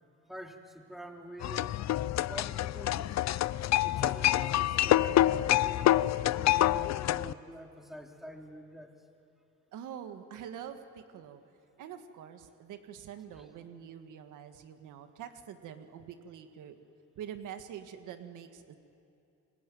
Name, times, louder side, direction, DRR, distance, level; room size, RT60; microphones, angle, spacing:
voice 1, 0.3-1.8 2.3-3.3 3.8-8.9 13.3-13.4, equal, ahead, 2 dB, 3.1 m, -46 dB
sound 1, 1.4-7.3, left 14 dB, 60° left, 0.6 m, -27 dB
voice 2, 9.7-11.4 11.8-16.8 17.2-18.8, right 9 dB, 85° right, 7 dB, 1.8 m, -45 dB
29.5 x 21.0 x 9.4 m, 2.7 s
cardioid pair, 90°, 30 cm